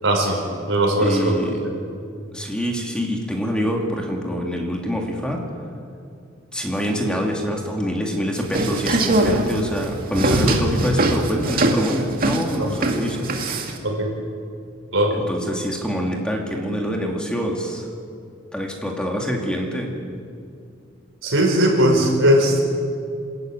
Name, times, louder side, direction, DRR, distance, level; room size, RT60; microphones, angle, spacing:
voice 1, 0.0-1.3 1.6-1.7 13.8-14.1 14.9-15.2 21.2-22.6, right 1 dB, 70° right, 1 dB, 5.6 m, -19 dB
voice 2, 1.0-1.6 2.3-5.4 6.5-13.3 15.1-17.9 18.5-20.0, equal, 5° left, 0 dB, 2.5 m, -25 dB
sound 1, 8.4-13.8, right 2 dB, 45° right, 2.3 m, -21 dB
27.5 x 14.0 x 9.3 m, 2.3 s
head